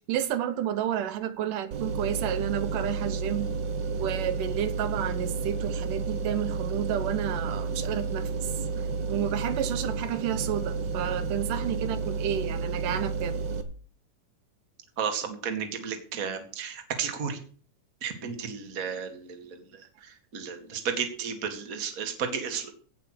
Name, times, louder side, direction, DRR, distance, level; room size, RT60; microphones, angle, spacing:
voice 1, 0.1-3.5 3.9-8.3 9.1-13.4, right 10 dB, 80° right, 2.5 m, -31 dB
sound 1, 1.7-13.6, right 4 dB, 65° right, 1.1 m, -31 dB
voice 2, 15.0-17.4 18.0-19.6 20.0-22.7, right 7 dB, 30° right, 1.8 m, -33 dB
16.5 x 5.7 x 6.4 m
omnidirectional pair, 3.7 m